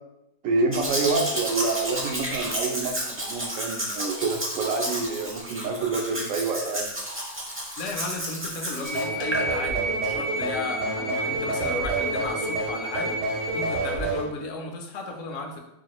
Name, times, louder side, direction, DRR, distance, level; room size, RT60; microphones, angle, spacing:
voice 1, 0.4-6.9, right 3 dB, 80° right, 3 dB, 1.0 m, -27 dB
Domestic sounds home sounds, 0.7-9.4 10.0-10.1, right 1 dB, 20° right, 0.3 m, -32 dB
voice 2, 7.8-13.2 13.5-15.6, left 3 dB, 75° left, 3 dB, 1.0 m, -34 dB
sound 1, 8.8-13.9, right 2 dB, 50° left, 0.4 m, -32 dB
sound 2, 8.9-14.3, right 2 dB, 50° right, 0.6 m, -29 dB
4.8 x 2.4 x 2.9 m, 0.86 s
omnidirectional pair, 1.4 m